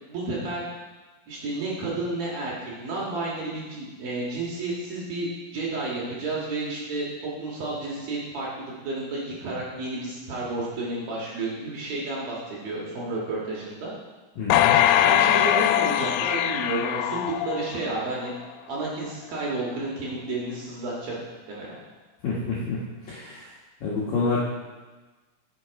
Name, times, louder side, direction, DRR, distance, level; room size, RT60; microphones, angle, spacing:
voice 1, 0.1-0.6 1.3-13.9 15.0-18.3 18.7-21.1 21.5-21.7, right 2 dB, 60° right, -5 dB, 2.9 m, -31 dB
voice 2, 14.4-14.8 22.2-22.8 23.1-23.5 23.8-24.4, left 4 dB, 70° left, -6 dB, 2.2 m, -27 dB
sound 1, 14.5-18.0 18.4-18.5, left 12 dB, 85° left, 3.2 m, -21 dB
12.0 x 6.8 x 4.7 m, 1.3 s
omnidirectional pair, 5.8 m